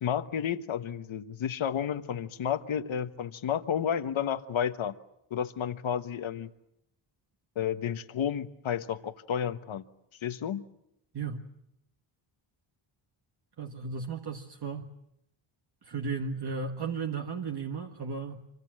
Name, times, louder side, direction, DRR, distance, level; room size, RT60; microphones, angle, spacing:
voice 1, 0.0-4.9 5.3-6.5 7.5-9.8 10.2-10.7, left 8 dB, 65° left, 1.3 m, -31 dB
voice 2, 13.6-14.9 15.8-18.4, right 5 dB, 50° right, 1.6 m, -35 dB
26.5 x 25.5 x 7.7 m
wide cardioid pair, 140°, 50 cm